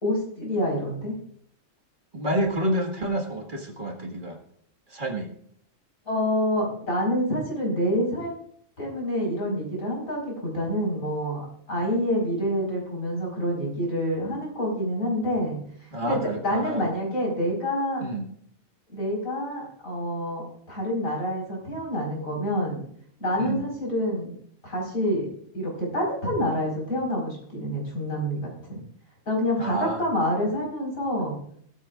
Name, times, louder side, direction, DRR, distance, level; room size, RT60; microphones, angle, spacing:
voice 1, 0.0-1.1 6.1-8.3 8.8-18.0 18.9-22.8 23.2-24.3 24.6-25.3 25.5-28.8 29.3-31.4, equal, 85° left, -2 dB, 5.2 m, -27 dB
voice 2, 2.1-4.4 4.9-5.3 15.9-16.9 18.0-18.3 23.4-23.6 29.6-30.0, right 1 dB, 40° right, 2 dB, 1.9 m, -29 dB
17.5 x 12.5 x 2.4 m, 0.64 s
omnidirectional pair, 1.4 m